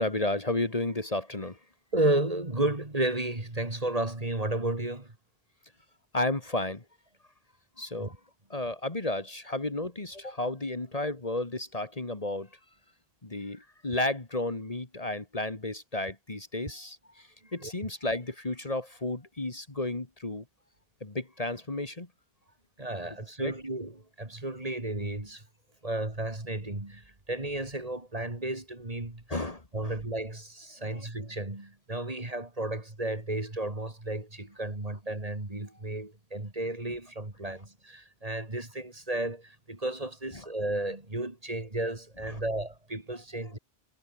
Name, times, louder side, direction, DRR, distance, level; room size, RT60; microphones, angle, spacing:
voice 1, 0.0-1.6 6.1-6.8 7.8-8.1 8.5-12.5 13.2-20.4 21.0-22.1 23.4-23.5 29.3-30.0 30.8-31.1 40.3-40.5 42.2-42.4 43.5-43.6, left 2 dB, 35° left, 2.1 m, -33 dB
voice 2, 1.9-5.1 8.0-8.1 17.6-17.7 22.8-25.4 25.8-27.0 27.3-29.2 29.7-43.6, right 1 dB, 40° right, 3.0 m, -33 dB
omnidirectional pair, 1.0 m